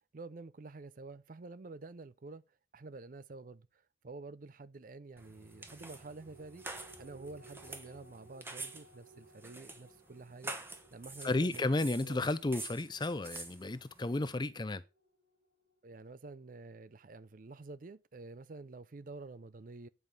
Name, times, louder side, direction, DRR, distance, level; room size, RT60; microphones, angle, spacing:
voice 1, 0.1-2.4 2.7-6.6 7.0-10.5 10.9-12.3 15.8-19.9, right 3 dB, 45° right, 0.5 m, -49 dB
sound 1, 5.2-14.3, right 2 dB, 15° right, 1.1 m, -48 dB
sound 2, 5.3-16.1 16.5-16.6, right 2 dB, 85° right, 4.4 m, -61 dB
voice 2, 11.2-14.8, left 2 dB, 25° left, 0.5 m, -33 dB
9.6 x 5.1 x 5.4 m
head